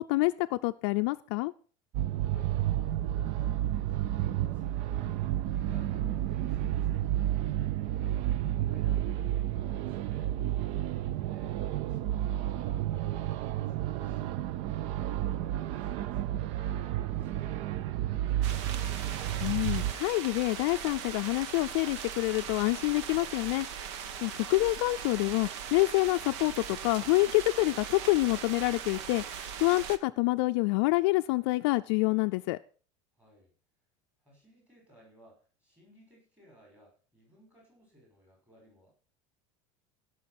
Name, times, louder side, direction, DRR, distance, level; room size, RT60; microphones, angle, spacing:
voice 1, 0.0-1.5 19.4-23.7 24.2-29.2 29.6-32.6, left 22 dB, 60° left, 9 dB, 0.5 m, -27 dB
sound 1, 1.9-19.9, right 12 dB, 40° right, 0.5 m, -31 dB
voice 2, 2.1-2.6 3.0-10.4 11.2-16.5 16.8-18.7 33.1-33.5 34.2-38.9, equal, 10° right, -1 dB, 5.9 m, -59 dB
sound 2, 18.4-30.0, right 8 dB, 70° right, 1.1 m, -40 dB
16.0 x 6.3 x 5.9 m, 0.39 s
cardioid pair, 175°, 15 cm